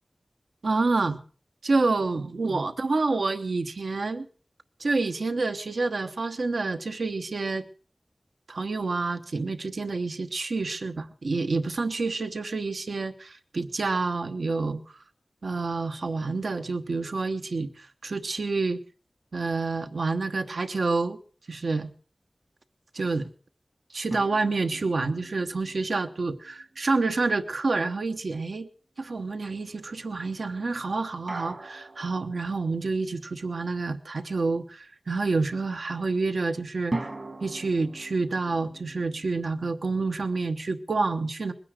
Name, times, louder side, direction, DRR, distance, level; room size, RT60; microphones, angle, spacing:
voice 1, 0.6-1.2 1.6-4.3 4.8-7.6 8.5-15.0 15.4-18.8 19.3-21.2 21.5-21.9 22.9-23.3 23.9-28.7 29.0-37.0 37.4-41.5, right 3 dB, 85° right, 8 dB, 1.0 m, -28 dB
sound 1, 24.1-27.5 31.3-33.3 36.9-40.0, right 2 dB, 55° right, 1.5 m, -40 dB
21.0 x 9.6 x 6.4 m, 0.41 s
wide cardioid pair, 60°, 0 cm